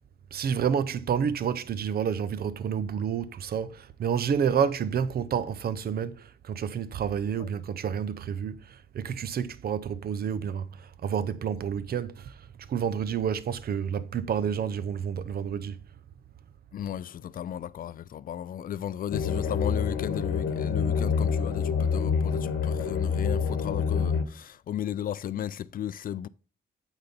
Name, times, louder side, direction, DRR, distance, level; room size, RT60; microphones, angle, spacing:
voice 1, 0.3-15.8, right 7 dB, 50° right, 0.7 m, -29 dB
voice 2, 16.7-26.3, left 10 dB, 45° left, 0.4 m, -35 dB
sound 1, 19.1-24.2, left 6 dB, 75° left, 1.1 m, -27 dB
8.6 x 4.1 x 4.1 m
cardioid pair, 90°, 20 cm